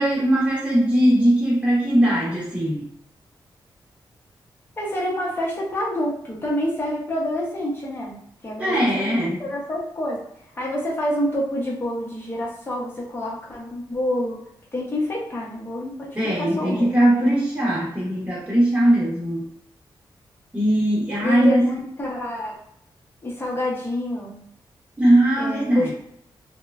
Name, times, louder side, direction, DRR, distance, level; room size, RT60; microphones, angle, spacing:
voice 1, 0.0-2.9 8.6-9.4 16.1-19.4 20.5-21.7 25.0-25.9, right 1 dB, 15° right, -6 dB, 0.8 m, -20 dB
voice 2, 4.8-8.2 8.4-10.2 10.5-14.4 14.7-16.9 21.2-22.6 23.2-24.4 25.4-25.9, left 1 dB, 25° left, -3 dB, 0.7 m, -27 dB
3.1 x 2.1 x 2.3 m, 0.73 s
wide cardioid pair, 180°, 8 cm